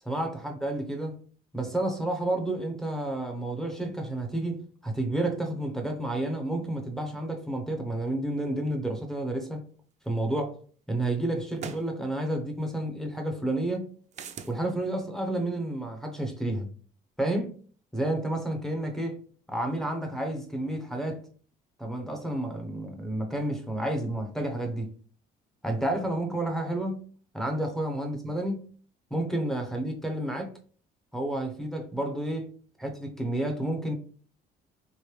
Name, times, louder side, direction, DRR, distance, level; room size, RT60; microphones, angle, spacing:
voice 1, 0.0-1.2 1.5-9.6 10.1-10.6 10.9-13.9 14.5-16.7 17.2-17.5 17.9-19.2 19.5-21.2 21.8-24.9 25.6-27.0 27.3-28.7 29.1-30.5 31.1-32.5 32.8-33.9, right 1 dB, ahead, 0.7 m, -30 dB
sound 1, 10.2-10.3 11.6-11.9 14.1-14.6, right 7 dB, 45° right, 0.4 m, -39 dB
3.2 x 2.6 x 3.1 m
cardioid pair, 110°, 17 cm